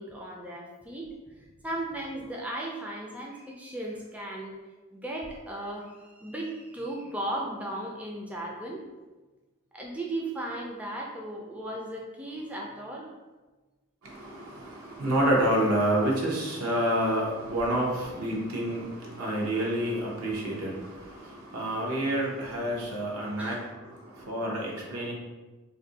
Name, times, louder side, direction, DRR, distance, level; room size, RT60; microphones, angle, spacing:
voice 1, 0.0-4.6 4.9-8.8 9.7-13.1 23.4-23.6, right 1 dB, 5° right, -2 dB, 0.3 m, -36 dB
voice 2, 14.0-25.1, right 1 dB, 80° right, -3 dB, 0.9 m, -28 dB
2.6 x 2.6 x 3.9 m, 1.2 s
head